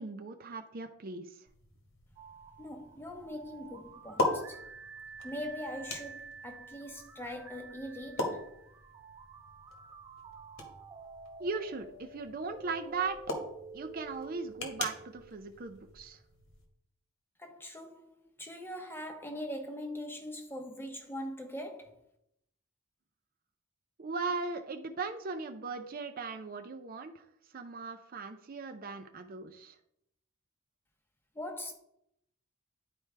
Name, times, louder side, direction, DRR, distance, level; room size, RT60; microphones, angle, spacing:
voice 1, 0.0-1.5 11.4-13.2 13.7-16.2 24.0-27.2 27.5-29.8, right 4 dB, 40° right, 0.5 m, -38 dB
sound 1, 1.5-16.7, left 2 dB, 60° left, 1.6 m, -41 dB
sound 2, 2.2-16.0, right 4 dB, 20° right, 1.5 m, -50 dB
voice 2, 2.6-4.6 5.2-8.4 17.4-18.1 18.4-22.0 31.3-31.7, equal, 10° left, 0.8 m, -41 dB
10.5 x 4.6 x 3.3 m
head